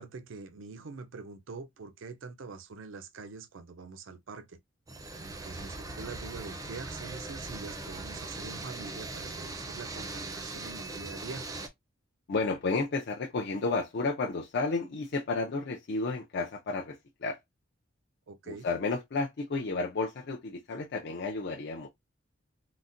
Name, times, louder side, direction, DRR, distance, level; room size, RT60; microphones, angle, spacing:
voice 1, 0.0-4.6 5.2-11.4 18.3-18.7, right 4 dB, 75° right, 0.5 m, -44 dB
sound 1, 4.9-11.7, right 2 dB, 20° right, 0.5 m, -40 dB
voice 2, 12.3-17.4 18.5-21.9, left 3 dB, 55° left, 0.5 m, -32 dB
3.9 x 2.1 x 2.5 m
head